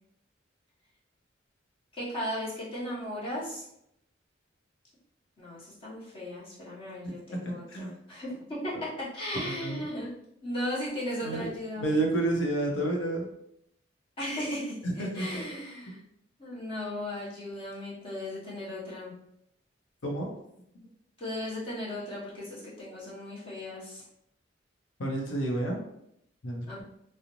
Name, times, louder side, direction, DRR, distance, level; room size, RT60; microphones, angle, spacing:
voice 1, 2.0-3.7 5.4-10.1 10.4-12.0 14.2-16.0 16.4-19.1 21.2-24.0 26.7-26.8, left 1 dB, 30° left, -8 dB, 0.9 m, -36 dB
voice 2, 7.4-7.9 9.4-9.8 11.2-13.3 14.8-15.4 20.0-20.3 25.0-25.8 26.4-26.8, right 2 dB, 85° left, 0 dB, 0.7 m, -30 dB
2.5 x 2.1 x 2.9 m, 0.76 s
head